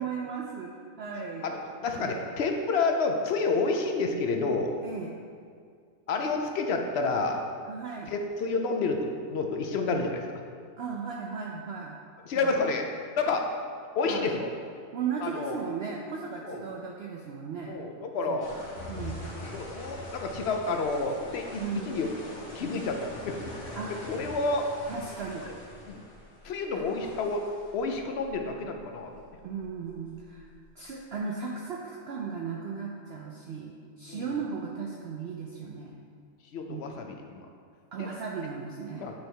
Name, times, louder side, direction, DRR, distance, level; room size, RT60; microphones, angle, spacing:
voice 1, 0.0-1.5 2.0-2.3 4.8-5.2 7.7-8.1 10.8-12.0 12.3-12.6 14.0-14.3 14.9-17.8 18.3-18.4 18.9-19.3 21.6-22.1 23.7-24.2 24.9-25.5 26.7-26.9 29.4-30.5 30.8-35.9 36.7-37.0 37.9-39.1, right 5 dB, 65° right, -1 dB, 0.6 m, -36 dB
voice 2, 1.4-4.8 6.1-7.4 8.1-10.3 12.3-12.9 13.2-13.4 14.0-14.5 15.2-15.6 16.4-16.6 17.7-18.5 19.3-22.1 22.5-23.4 24.0-24.7 25.9-26.0 26.4-27.4 27.7-29.1 34.1-34.3 36.5-37.5 38.0-38.1 39.0-39.1, left 3 dB, 65° left, 3 dB, 0.7 m, -29 dB
sound 1, 18.4-31.0, left 1 dB, 35° left, 1.5 m, -44 dB
8.5 x 3.3 x 4.5 m, 2.2 s
omnidirectional pair, 1.5 m